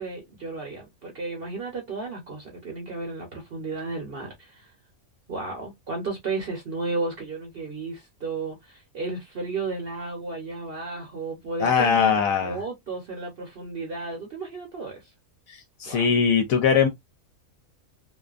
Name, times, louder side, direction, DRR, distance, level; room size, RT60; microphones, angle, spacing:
voice 1, 0.0-4.7 5.3-15.1 15.9-16.0, right 3 dB, 50° right, 0.8 m, -33 dB
voice 2, 11.6-12.6 15.5-16.9, left 6 dB, 75° left, 1.0 m, -21 dB
2.5 x 2.3 x 2.3 m
omnidirectional pair, 1.5 m